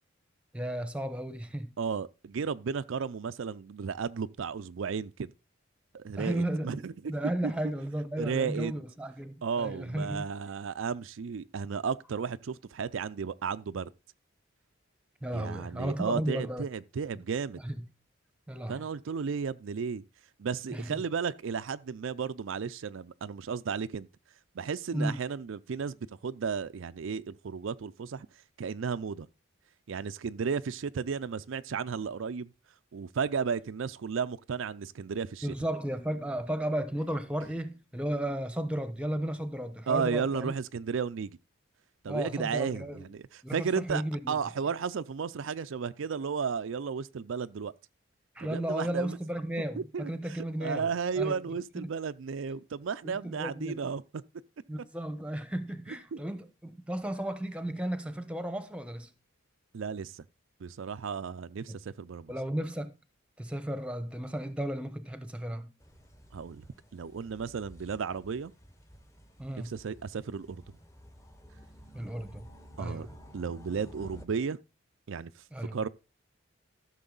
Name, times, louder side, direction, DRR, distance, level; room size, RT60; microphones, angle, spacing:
voice 1, 0.5-1.7 6.2-10.3 15.2-16.7 17.6-17.9 18.5-18.9 20.7-21.1 24.9-25.2 35.4-40.5 42.1-43.1 43.4-44.4 48.3-50.9 51.2-51.4 53.0-53.8 54.7-59.1 62.3-62.9 63.4-65.7 69.4-69.7 71.9-72.5 72.8-73.1 75.5-75.8, right 1 dB, 5° right, 0.9 m, -34 dB
voice 2, 1.8-5.3 5.9-6.9 7.4-7.5 8.2-8.7 9.4-13.9 15.3-17.6 18.7-20.0 20.4-24.1 24.5-26.0 26.2-28.3 28.6-29.3 29.9-32.5 32.9-35.5 39.9-41.4 42.0-44.0 44.3-47.7 48.4-49.2 49.8-50.1 50.6-54.2 56.1-56.2 59.7-60.2 60.6-62.3 66.3-66.6 66.9-68.5 69.6-70.8 72.8-73.1 73.3-74.6 75.1-75.4 75.7-75.9, right 6 dB, 70° right, 0.4 m, -34 dB
sound 1, 65.8-74.2, equal, 15° left, 1.1 m, -53 dB
13.5 x 6.7 x 3.9 m
head